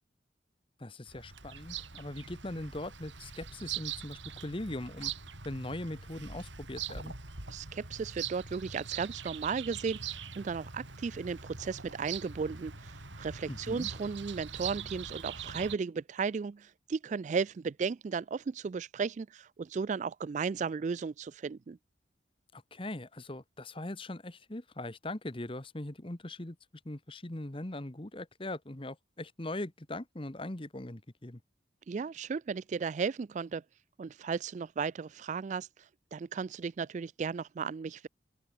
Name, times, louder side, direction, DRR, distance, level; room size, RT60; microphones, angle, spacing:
voice 1, 0.8-5.1 5.4-7.1 13.5-13.9 22.5-26.6 26.8-31.4, left 1 dB, 30° left, 1.2 m, -40 dB
Bird vocalization bird call bird song, 1.1-15.8, right 7 dB, 75° right, 4.5 m, -42 dB
voice 2, 7.5-10.0 10.4-21.8 31.9-33.6 34.0-35.7 36.1-38.1, right 5 dB, 40° right, 0.3 m, -35 dB
open air
head